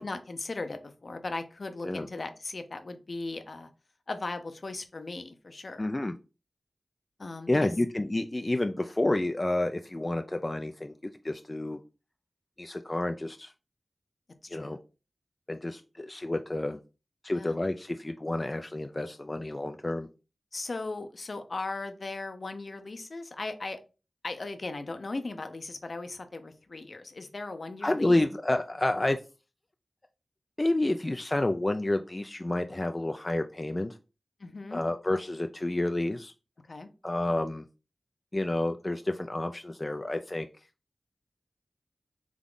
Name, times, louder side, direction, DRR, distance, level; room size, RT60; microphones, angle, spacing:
voice 1, 0.0-3.7 4.1-5.9 7.2-7.7 14.4-14.8 17.3-17.6 20.5-23.8 24.2-28.2 34.4-34.8 36.7-36.9, left 3 dB, 60° left, 8 dB, 0.7 m, -38 dB
voice 2, 5.8-6.1 7.5-10.9 11.2-11.8 12.6-13.5 14.5-14.8 15.5-16.8 17.2-20.1 27.8-29.2 30.6-33.9 34.7-36.3 37.0-37.6 38.3-40.5, left 1 dB, 30° left, 6 dB, 0.4 m, -29 dB
3.6 x 3.6 x 3.8 m, 0.32 s
wide cardioid pair, 55°, 0 cm